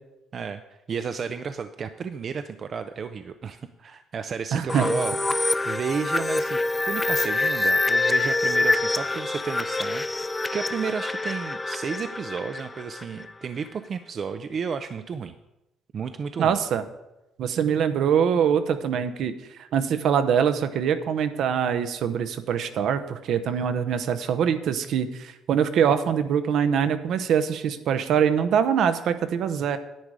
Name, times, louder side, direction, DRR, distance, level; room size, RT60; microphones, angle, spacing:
voice 1, 0.9-6.6 6.9-15.4 15.9-16.6, right 6 dB, 45° right, 9 dB, 0.5 m, -32 dB
voice 2, 4.5-4.9 16.4-16.8 17.4-19.3 19.7-29.8, right 8 dB, 65° right, 11 dB, 0.8 m, -23 dB
sound 1, 4.7-13.3, left 2 dB, 15° left, 0.5 m, -26 dB
10.5 x 8.8 x 4.8 m, 0.94 s
cardioid pair, 110°, 0 cm